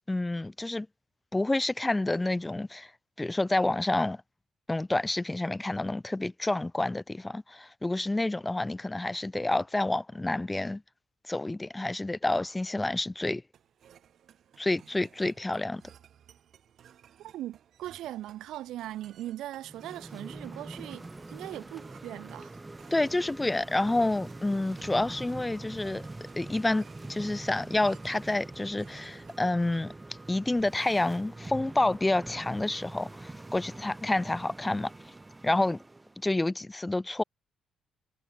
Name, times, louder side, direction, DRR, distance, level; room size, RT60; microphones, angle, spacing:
voice 1, 0.1-0.9 1.3-2.9 3.2-4.2 4.7-10.8 11.3-13.4 14.6-15.8 22.9-26.1 26.4-29.9 30.3-34.9 35.4-35.8 36.2-37.2, left 2 dB, 15° left, 0.7 m, -29 dB
sound 1, 13.5-29.5, right 9 dB, 65° right, 7.5 m, -58 dB
voice 2, 17.2-22.6, right 14 dB, 85° right, 2.5 m, -40 dB
sound 2, 19.6-36.2, right 2 dB, 15° right, 3.5 m, -44 dB
cardioid pair, 90°, 0 cm